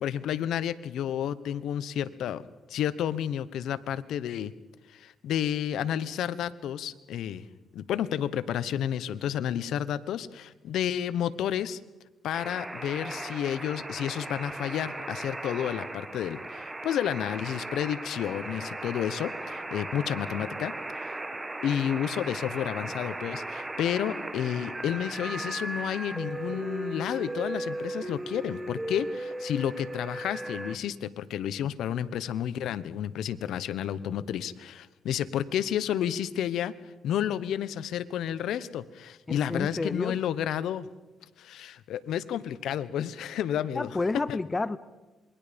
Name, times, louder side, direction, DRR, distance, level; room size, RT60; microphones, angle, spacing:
voice 1, 0.0-2.4 2.7-4.5 4.9-7.4 7.7-11.8 12.2-20.7 21.0-21.1 21.6-36.7 37.0-40.9 41.4-44.0 44.3-44.4, left 10 dB, 80° left, 15 dB, 1.0 m, -31 dB
sound 1, 12.3-30.8, right 2 dB, 15° right, 1.7 m, -37 dB
voice 2, 39.3-40.2 43.7-44.8, left 3 dB, 25° left, 16 dB, 0.8 m, -30 dB
27.0 x 22.0 x 5.2 m, 1.1 s
cardioid pair, 90°, 0 cm